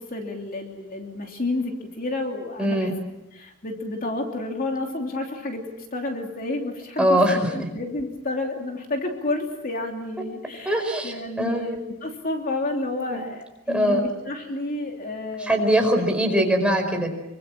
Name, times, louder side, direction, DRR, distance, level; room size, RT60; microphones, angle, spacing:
voice 1, 0.0-2.9 3.3-5.6 5.9-15.6, left 2 dB, 40° left, 2 dB, 3.0 m, -30 dB
voice 2, 2.6-2.9 7.0-7.4 10.6-11.6 13.1-13.2 13.7-14.0 15.4-17.1, equal, 5° right, 2 dB, 4.9 m, -21 dB
26.5 x 24.5 x 7.5 m, 0.91 s
head